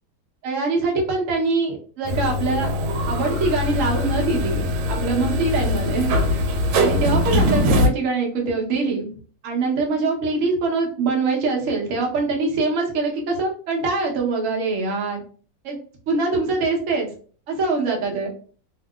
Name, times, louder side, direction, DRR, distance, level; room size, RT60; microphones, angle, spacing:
voice 1, 0.4-2.7 3.1-6.4 6.8-9.1 9.4-15.2 15.6-15.8 16.1-17.1 17.5-18.3, right 3 dB, 55° right, -1 dB, 0.9 m, -23 dB
sound 1, 2.0-7.9, left 1 dB, 85° right, 1.4 m, -22 dB
2.9 x 2.8 x 2.3 m, 0.43 s
omnidirectional pair, 2.2 m